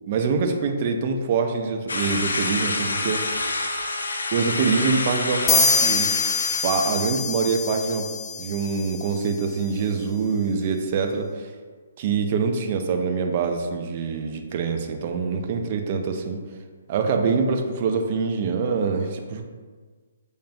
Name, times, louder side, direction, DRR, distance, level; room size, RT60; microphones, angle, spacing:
voice 1, 0.1-3.6 4.3-6.1 6.6-8.1 8.4-11.5 12.0-16.4 16.9-19.5, right 5 dB, 40° right, 5 dB, 0.5 m, -25 dB
sound 1, 1.9-7.0, left 2 dB, 75° left, 0.5 m, -28 dB
Trumpet, 2.8-6.5, right 2 dB, 80° right, 1.0 m, -40 dB
sound 2, 5.5-9.1, left 5 dB, 20° left, 0.5 m, -24 dB
6.3 x 2.2 x 2.6 m, 1.5 s
figure-of-eight pair, 135°, 0 cm